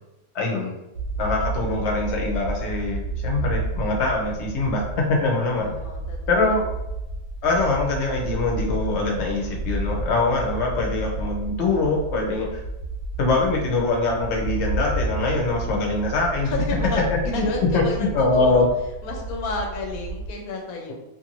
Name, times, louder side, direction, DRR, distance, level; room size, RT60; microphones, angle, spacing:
voice 1, 0.3-0.7 1.2-5.7 6.3-6.6 7.4-12.5 13.2-18.7, left 3 dB, 60° left, -1 dB, 0.9 m, -23 dB
sound 1, 0.9-20.3, right 2 dB, 65° right, 0.9 m, -31 dB
voice 2, 5.6-6.2 6.4-6.6 16.4-17.0 17.3-18.7 19.0-20.9, left 3 dB, 90° left, 1 dB, 1.1 m, -31 dB
2.6 x 2.6 x 2.9 m, 0.92 s
omnidirectional pair, 1.5 m